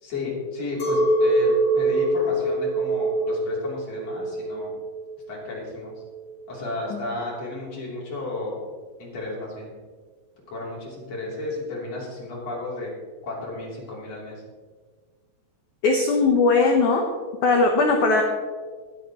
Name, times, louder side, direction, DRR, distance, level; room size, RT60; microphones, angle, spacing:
voice 1, 0.0-4.7 5.3-5.9 6.5-8.6 9.0-9.7 10.5-12.9 13.2-14.4, left 2 dB, 40° left, -5 dB, 4.1 m, -33 dB
Chink clink, 0.8-6.3, right 1 dB, 55° left, 4.3 m, -24 dB
voice 2, 15.8-17.0 17.4-18.2, left 3 dB, 90° left, 2 dB, 1.7 m, -19 dB
20.0 x 9.2 x 3.1 m, 1.5 s
omnidirectional pair, 5.1 m